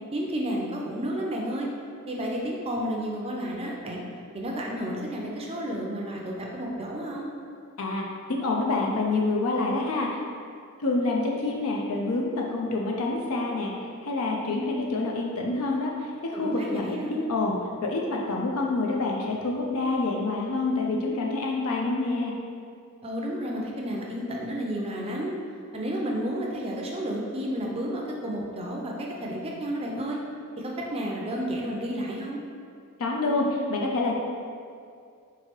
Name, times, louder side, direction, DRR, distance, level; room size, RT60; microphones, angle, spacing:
voice 1, 0.1-1.7 2.1-4.0 4.3-7.3 16.3-17.2 23.0-25.3 25.7-30.2 30.6-32.4, equal, 25° right, -1 dB, 0.5 m, -31 dB
voice 2, 7.8-10.2 10.8-17.5 17.8-22.3 33.0-34.2, left 2 dB, 70° left, -1 dB, 0.5 m, -27 dB
3.7 x 3.1 x 4.4 m, 2.3 s
head